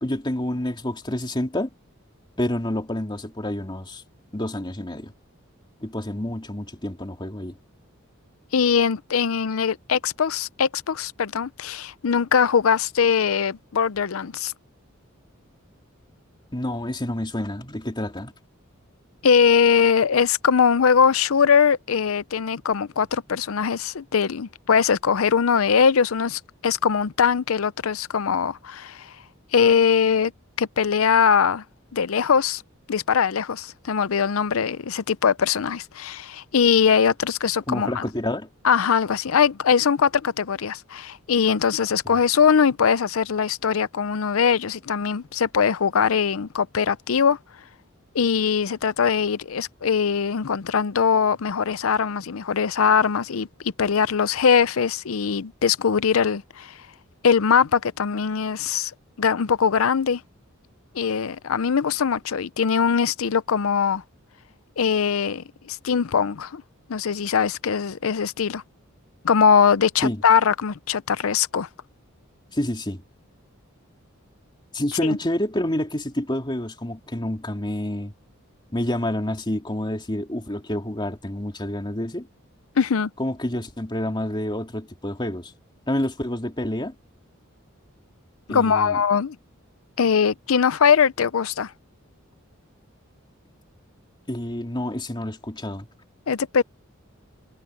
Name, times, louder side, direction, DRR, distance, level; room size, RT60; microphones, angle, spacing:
voice 1, 0.0-1.7 2.4-4.0 4.3-5.1 5.8-7.6 16.5-18.3 37.7-38.5 42.0-42.2 70.0-70.2 72.5-73.0 74.7-78.1 78.7-82.3 83.2-85.5 85.9-86.9 88.5-89.0 94.3-95.9, left 1 dB, 20° left, 3.0 m, -28 dB
voice 2, 8.5-14.5 19.2-29.1 29.5-30.3 30.6-31.6 31.9-32.6 32.9-38.0 38.6-47.4 48.1-53.5 53.8-56.7 57.2-58.9 59.2-60.2 60.9-64.0 64.8-66.6 66.9-68.6 69.2-71.7 75.0-75.2 82.8-83.1 88.5-89.4 90.0-91.7 96.3-96.6, left 6 dB, 75° left, 0.6 m, -21 dB
head